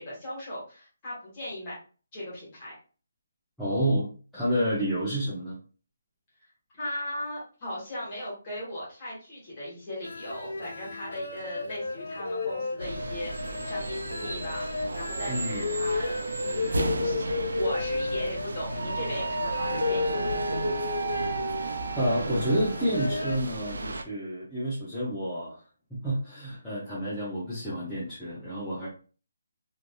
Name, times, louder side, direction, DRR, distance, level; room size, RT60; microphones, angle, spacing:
voice 1, 0.0-1.7 2.1-2.7 6.8-14.7 14.9-20.1, left 1 dB, 20° left, -6 dB, 1.2 m, -38 dB
voice 2, 3.6-4.1 4.3-5.6 15.3-15.8 22.0-25.6 25.9-28.9, equal, ahead, -13 dB, 0.5 m, -29 dB
sound 1, 10.0-23.4, left 3 dB, 75° left, 0.6 m, -33 dB
sound 2, 12.8-24.0, right 3 dB, 90° right, 0.4 m, -33 dB
3.1 x 2.5 x 2.2 m, 0.37 s
hypercardioid pair, 180°, 0 cm